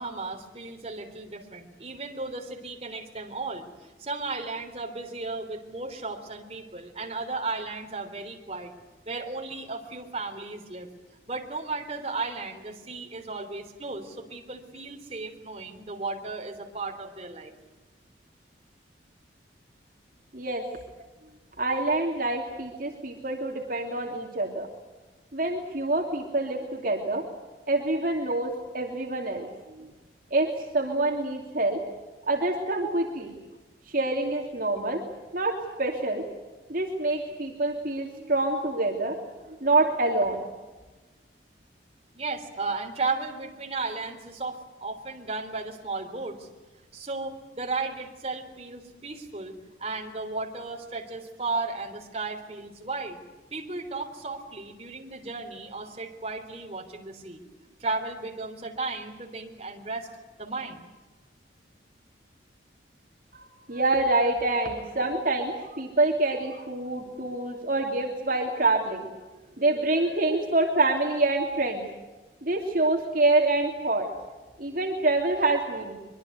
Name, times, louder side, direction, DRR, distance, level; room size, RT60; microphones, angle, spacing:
voice 1, 0.0-8.7 9.1-10.9 11.3-17.5 24.2-24.3 42.1-46.5 46.9-53.2 53.5-57.4 57.8-60.1 60.4-60.8 64.9-65.0, right 3 dB, 35° right, 2 dB, 3.7 m, -35 dB
voice 2, 20.3-20.6 21.6-24.7 25.3-27.2 27.7-29.5 29.8-29.9 30.3-31.8 32.3-33.4 33.9-35.0 35.3-36.3 36.7-39.2 39.6-40.5 63.4-69.1 69.6-71.8 72.4-74.1 74.6-75.9, right 2 dB, 50° right, 0 dB, 2.9 m, -26 dB
24.5 x 23.0 x 8.1 m, 1.2 s
head